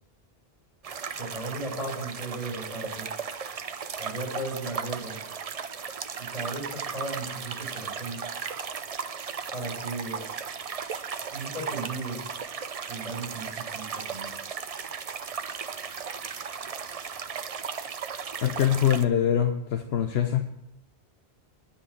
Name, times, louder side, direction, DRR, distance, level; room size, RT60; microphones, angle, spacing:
sound 1, 0.8-19.0, right 6 dB, 45° right, 0.6 m, -36 dB
voice 1, 1.2-3.1 4.0-5.2 6.2-8.2 9.5-10.2 11.3-12.3 12.9-14.4, right 2 dB, 40° left, -2 dB, 5.4 m, -36 dB
voice 2, 18.4-20.5, left 10 dB, 80° left, 6 dB, 1.0 m, -24 dB
10.0 x 5.5 x 8.4 m, 0.80 s
omnidirectional pair, 1.0 m